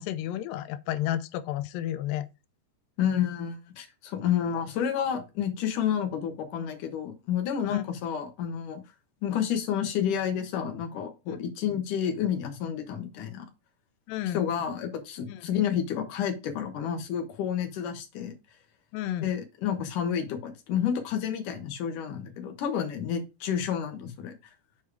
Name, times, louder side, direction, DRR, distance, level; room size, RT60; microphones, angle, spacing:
voice 1, 0.0-2.3 7.6-7.8 14.1-14.5 15.3-15.5 18.9-19.3, left 12 dB, 90° left, 1.9 m, -32 dB
voice 2, 3.0-8.8 9.2-13.5 14.3-18.3 19.2-24.3, left 8 dB, 60° left, 2.5 m, -30 dB
7.2 x 4.6 x 4.8 m
omnidirectional pair, 4.8 m